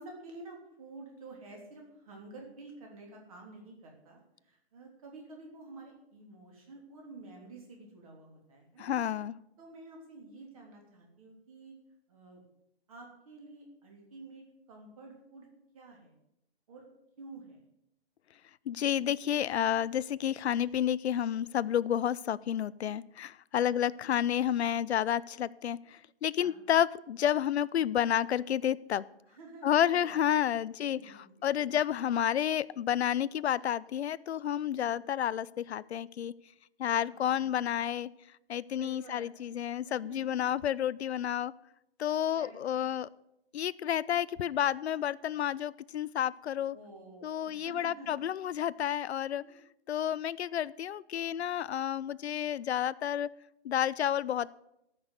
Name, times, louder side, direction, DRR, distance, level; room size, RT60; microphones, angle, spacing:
voice 1, 0.0-8.9 9.6-11.8 12.1-12.4 12.9-15.5 15.7-16.1 16.7-16.9 17.2-17.6 18.8-18.9 23.5-23.7 26.4-26.6 29.3-30.6 30.9-31.5 34.8-35.0 37.0-37.6 38.8-39.6 39.9-40.3 42.3-42.9 46.7-48.2 49.4-49.6, right 2 dB, 35° right, 0 dB, 3.2 m, -50 dB
voice 2, 8.8-9.3 18.7-29.0 29.6-31.0 31.4-36.3 36.8-38.1 38.5-41.5 42.0-43.1 43.5-46.8 47.2-49.4 49.9-53.3 53.6-54.5, left 10 dB, 80° left, 18 dB, 0.6 m, -30 dB
13.5 x 6.2 x 8.1 m, 0.83 s
hypercardioid pair, 180°, 32 cm